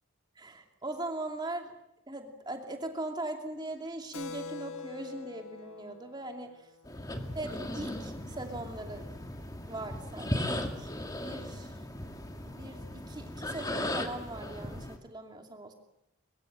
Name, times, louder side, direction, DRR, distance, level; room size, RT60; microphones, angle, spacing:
voice 1, 0.4-1.7 2.1-6.5 7.3-9.1 9.7-10.9 11.2-11.7 12.4-15.7, right 2 dB, 20° right, 4 dB, 2.7 m, -40 dB
Keyboard (musical), 4.1-8.2, left 4 dB, 85° left, 1.5 m, -46 dB
sound 1, 6.8-15.0, left 1 dB, 15° left, 1.9 m, -37 dB
23.0 x 23.0 x 7.6 m, 0.80 s
head